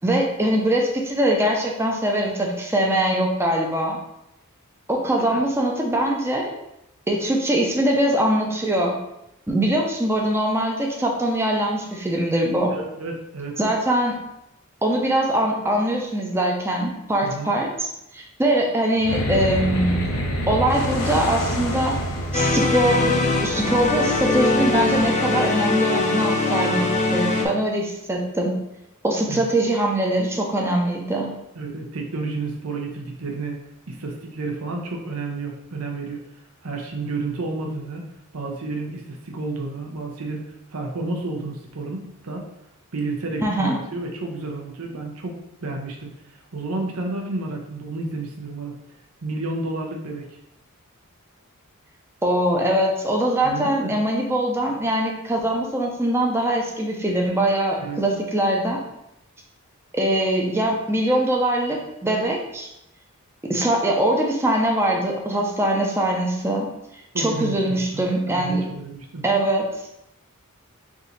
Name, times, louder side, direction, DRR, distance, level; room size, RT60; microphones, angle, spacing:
voice 1, 0.0-4.0 4.9-6.5 7.1-9.0 9.5-12.7 13.6-14.2 14.8-20.1 20.5-22.0 22.3-28.6 29.0-31.3 43.4-43.8 52.2-58.8 59.9-62.7 63.5-66.7 67.2-68.6 69.2-69.7, right 1 dB, 10° right, 0 dB, 0.6 m, -22 dB
voice 2, 12.7-13.5 17.2-17.5 29.3-29.5 31.6-33.6 33.9-36.2 36.6-38.0 38.3-42.5 42.9-45.4 45.6-46.1 46.5-48.7 49.2-50.3 53.4-54.0 57.8-58.0 67.1-69.2, right 3 dB, 70° right, 1 dB, 0.8 m, -31 dB
sound 1, 19.0-25.6, equal, 65° left, 0.7 m, -28 dB
sound 2, 22.3-27.4, left 3 dB, 30° left, 0.5 m, -22 dB
3.6 x 2.8 x 4.0 m, 0.84 s
head